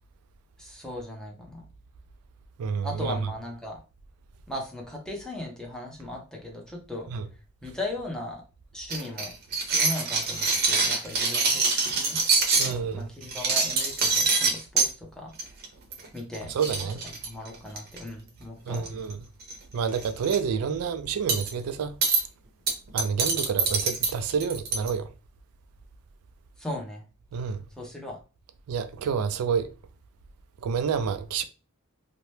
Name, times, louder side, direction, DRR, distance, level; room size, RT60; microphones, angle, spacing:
voice 1, 0.6-1.6 2.8-3.8 4.5-7.1 7.6-8.4 8.7-12.2 12.6-15.3 16.1-16.5 16.8-16.9 17.2-18.9 26.6-27.0 27.8-28.2, left 1 dB, 5° left, 0.6 m, -38 dB
voice 2, 2.6-3.3 7.1-7.3 12.6-13.1 16.5-17.0 18.7-19.2 19.7-21.9 22.9-25.1 27.3-27.6 28.7-29.7 30.6-31.4, right 6 dB, 80° right, 0.3 m, -28 dB
sound 1, 8.9-12.7 13.2-14.9 15.4-15.7 15.9-16.1 16.3-16.4 16.6-18.0 18.7-19.1 19.4-19.6 19.9-20.4 21.3-21.5 22.0-22.2 22.7-24.9, right 4 dB, 45° right, 0.7 m, -25 dB
2.8 x 2.1 x 3.1 m
head